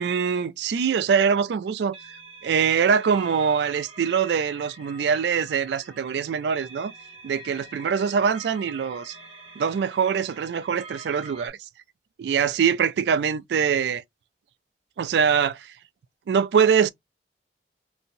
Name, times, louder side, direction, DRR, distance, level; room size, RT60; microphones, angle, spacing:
voice 1, 0.0-1.9 2.4-6.9 7.2-9.1 9.6-11.6 12.2-14.0 15.0-15.7 16.3-16.9, right 6 dB, 70° right, 0.3 m, -23 dB
sound 1, 1.9-11.5, right 2 dB, 30° right, 0.9 m, -46 dB
2.7 x 2.7 x 2.6 m
head